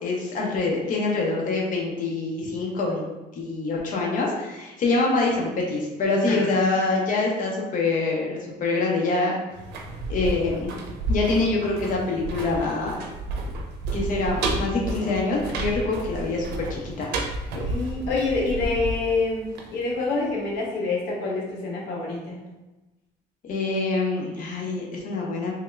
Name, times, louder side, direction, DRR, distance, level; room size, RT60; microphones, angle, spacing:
voice 1, 0.0-3.1 3.3-9.4 10.1-10.7 11.1-13.0 13.9-17.1 23.4-25.5, left 3 dB, 50° left, -2 dB, 0.8 m, -25 dB
sound 1, 9.5-20.3 20.6-20.7, right 2 dB, 80° right, 0.6 m, -31 dB
voice 2, 17.5-22.4, left 3 dB, 85° left, -2 dB, 0.9 m, -27 dB
3.5 x 2.3 x 3.2 m, 1.1 s
cardioid pair, 110°, 17 cm